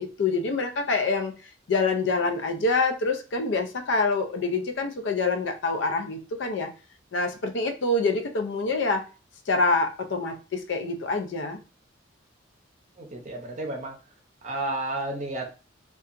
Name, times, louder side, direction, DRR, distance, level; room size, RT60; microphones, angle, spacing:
voice 1, 0.0-1.3 1.7-6.7 7.1-9.0 9.5-11.6, left 3 dB, 65° left, 5 dB, 0.5 m, -26 dB
voice 2, 13.0-14.0 14.4-15.5, right 2 dB, 35° right, 1 dB, 0.6 m, -32 dB
2.7 x 2.3 x 2.5 m, 0.33 s
head